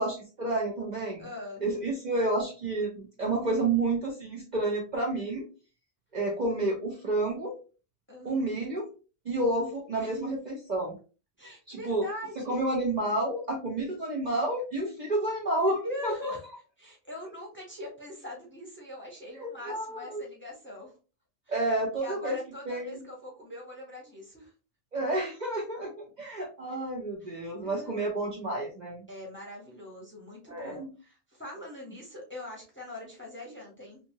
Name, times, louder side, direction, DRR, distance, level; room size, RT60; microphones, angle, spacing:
voice 1, 0.0-1.3 1.6-5.4 6.1-7.5 8.2-8.9 9.2-11.0 11.7-12.1 12.4-16.3 19.3-20.3 21.5-22.4 22.7-23.0 24.9-29.0 30.5-30.9, right 2 dB, 45° right, -1 dB, 0.7 m, -30 dB
voice 2, 1.2-1.6 8.1-8.5 10.0-10.1 11.4-12.6 15.8-16.5 16.8-20.9 21.5-21.6 22.0-24.5 27.2-27.3 27.6-27.9 29.1-34.0, left 1 dB, 10° left, -1 dB, 0.7 m, -42 dB
2.7 x 2.6 x 2.7 m, 0.34 s
omnidirectional pair, 1.2 m